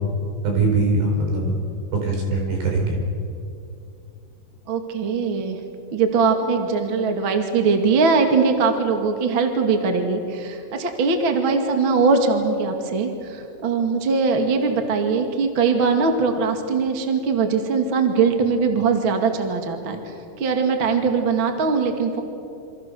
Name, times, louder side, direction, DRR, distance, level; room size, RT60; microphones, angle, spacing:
voice 1, 0.4-1.5 1.9-3.0, right 3 dB, 65° right, 1 dB, 6.8 m, -21 dB
voice 2, 4.7-5.6 5.9-22.2, right 4 dB, 45° right, 5 dB, 1.8 m, -21 dB
28.0 x 27.0 x 6.9 m, 2.6 s
omnidirectional pair, 5.4 m